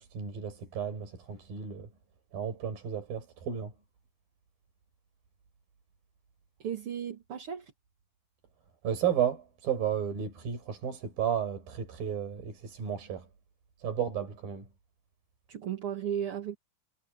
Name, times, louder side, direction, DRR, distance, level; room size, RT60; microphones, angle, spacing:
voice 1, 0.0-1.9 2.3-3.7 8.8-13.3 13.8-14.7, right 9 dB, 75° right, 6.7 m, -33 dB
voice 2, 6.6-7.7 15.5-16.6, right 9 dB, 45° right, 2.1 m, -35 dB
omnidirectional pair, 4.2 m